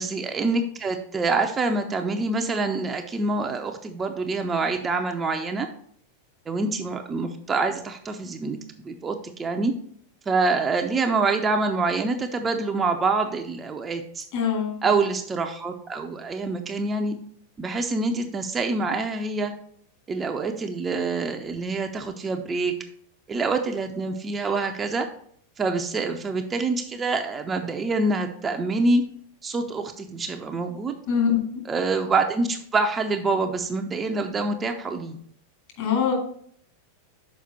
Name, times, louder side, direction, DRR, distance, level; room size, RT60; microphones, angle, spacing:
voice 1, 0.0-5.7 6.5-8.6 8.8-9.7 10.3-14.2 14.8-17.2 17.6-19.5 20.1-22.7 23.3-25.1 25.6-29.0 29.4-30.9 31.7-35.2, right 3 dB, 20° right, 4 dB, 0.6 m, -26 dB
voice 2, 14.3-15.0 31.1-31.4 35.8-36.1, left 7 dB, 50° left, 0 dB, 2.5 m, -23 dB
6.5 x 4.9 x 4.4 m, 0.62 s
figure-of-eight pair, 90°, 0 cm